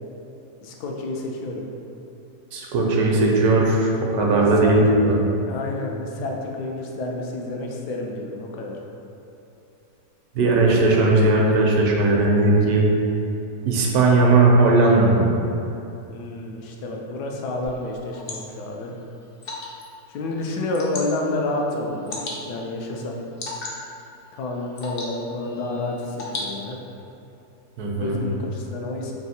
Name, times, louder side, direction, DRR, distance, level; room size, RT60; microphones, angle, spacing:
voice 1, 0.6-1.7 4.3-4.8 5.5-8.8 16.1-18.9 20.1-23.2 24.3-26.8 28.0-29.2, left 2 dB, 85° left, 0 dB, 1.2 m, -29 dB
voice 2, 2.5-5.1 10.4-12.9 13.7-15.2 27.8-28.2, right 2 dB, 75° right, -1 dB, 1.1 m, -18 dB
Water / Drip, 17.6-27.0, left 2 dB, 60° left, 0.6 m, -38 dB
3.4 x 2.7 x 4.1 m, 2.8 s
omnidirectional pair, 1.7 m